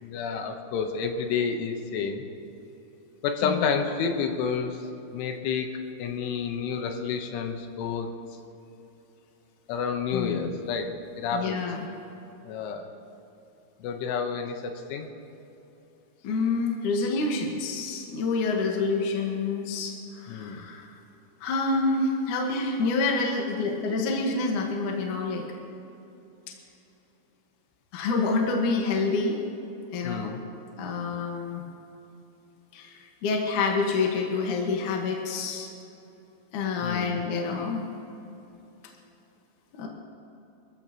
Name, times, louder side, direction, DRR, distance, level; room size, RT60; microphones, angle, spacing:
voice 1, 0.0-2.3 3.2-4.9 5.1-5.7 6.0-8.1 9.7-11.6 12.5-12.9 13.8-15.1 20.3-20.7 30.0-30.4 36.8-37.2, left 6 dB, 85° left, 5 dB, 3.5 m, -30 dB
voice 2, 10.1-10.5 11.3-11.8 16.2-20.9 21.4-25.5 27.9-29.4 29.9-30.3 30.8-31.6 32.7-35.7 36.5-37.9 39.7-39.9, left 3 dB, 60° left, 0 dB, 2.2 m, -27 dB
25.0 x 15.0 x 3.0 m, 3.0 s
omnidirectional pair, 5.6 m